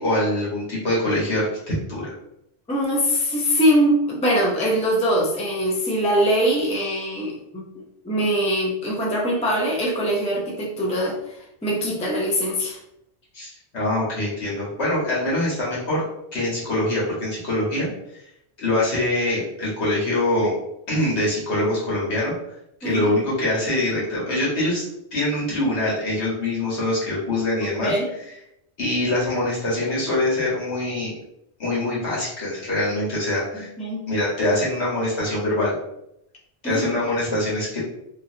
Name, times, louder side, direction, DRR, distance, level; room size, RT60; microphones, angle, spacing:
voice 1, 0.0-2.1 13.3-16.0 16.3-17.9 18.6-20.5 20.9-22.3 22.8-24.8 25.1-27.9 28.8-31.1 31.6-33.7 34.1-35.7 36.6-37.8, left 1 dB, 80° left, -6 dB, 1.5 m, -24 dB
voice 2, 2.7-12.8 22.8-23.1 27.8-28.1 33.5-34.0 36.6-36.9, equal, 10° left, -2 dB, 0.3 m, -22 dB
3.0 x 2.5 x 2.6 m, 0.80 s
omnidirectional pair, 1.1 m